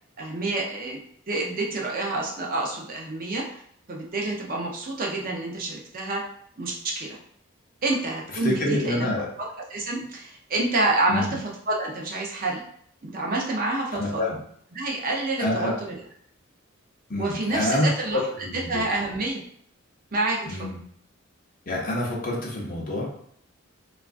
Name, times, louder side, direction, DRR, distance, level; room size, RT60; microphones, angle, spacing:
voice 1, 0.2-1.0 1.3-3.4 3.9-6.2 6.6-7.2 7.8-9.1 9.4-12.6 13.0-14.2 14.7-16.0 17.2-18.2 18.7-19.4 20.1-20.6, right 2 dB, 40° right, -1 dB, 0.6 m, -28 dB
voice 2, 8.4-9.3 11.1-11.3 13.9-14.4 15.4-15.7 17.1-18.8 20.5-20.8 21.7-23.1, left 1 dB, 40° left, -2 dB, 0.7 m, -27 dB
3.5 x 2.4 x 2.4 m, 0.66 s
head